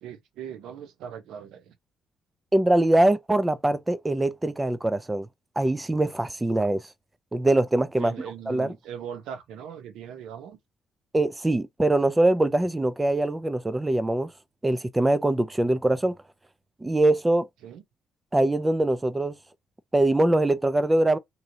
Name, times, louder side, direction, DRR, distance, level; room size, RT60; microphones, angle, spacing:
voice 1, 0.0-1.8 8.0-10.6 17.6-17.8, right 8 dB, 90° right, 0.6 m, -40 dB
voice 2, 2.5-5.3 5.6-6.8 7.3-8.1 8.5-8.7 11.1-14.3 14.6-16.1 16.8-17.5 18.3-19.4 19.9-21.2, right 1 dB, 15° right, 0.4 m, -23 dB
3.0 x 2.7 x 2.7 m
cardioid pair, 90°, 0 cm